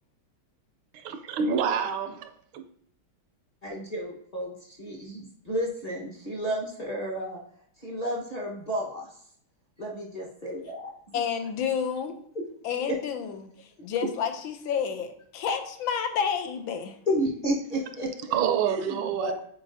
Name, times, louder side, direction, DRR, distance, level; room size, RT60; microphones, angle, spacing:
voice 1, 0.9-2.6 18.3-19.3, right 7 dB, 80° right, 1.4 m, -27 dB
voice 2, 3.6-7.4 7.8-9.1 9.8-10.9 12.8-13.0 17.1-18.1 18.6-19.4, equal, 30° left, 0.8 m, -31 dB
voice 3, 11.1-12.1 12.6-13.3 13.8-16.9, left 7 dB, 75° left, 1.4 m, -29 dB
8.6 x 4.2 x 2.6 m
omnidirectional pair, 2.3 m